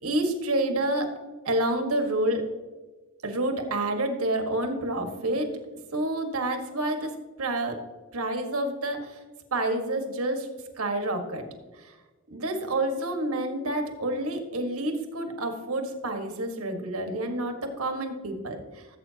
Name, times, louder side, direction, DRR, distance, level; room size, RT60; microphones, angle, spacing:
voice 1, 0.0-1.1 1.5-2.4 3.2-5.5 5.9-7.1 7.4-7.8 8.1-9.2 9.5-10.5 10.8-11.5 11.8-12.0 12.3-18.9, right 1 dB, 90° right, 5 dB, 1.6 m, -28 dB
17.0 x 8.1 x 2.9 m, 1.3 s
head